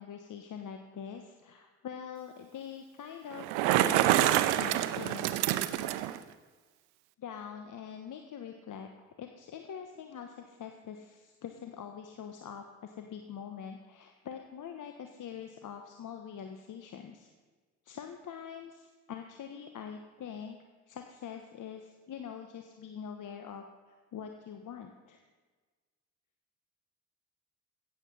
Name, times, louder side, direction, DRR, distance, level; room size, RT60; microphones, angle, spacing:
voice 1, 0.0-5.5 7.2-17.3 17.8-20.6 20.9-23.6 24.1-25.2, left 8 dB, 50° left, 5 dB, 1.2 m, -44 dB
Bicycle, 3.3-6.2, right 13 dB, 70° right, 0.8 m, -27 dB
15.5 x 8.4 x 5.6 m, 1.4 s
hypercardioid pair, 50°, 40 cm